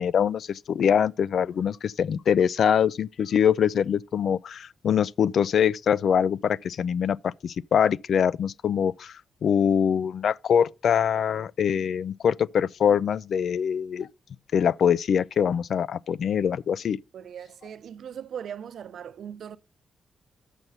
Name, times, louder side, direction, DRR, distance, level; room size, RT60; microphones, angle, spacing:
voice 1, 0.0-14.1 14.5-17.0, left 8 dB, 65° left, 0.3 m, -24 dB
voice 2, 17.1-19.6, right 8 dB, 70° right, 0.6 m, -39 dB
6.6 x 6.2 x 5.5 m
wide cardioid pair, 140°, 0 cm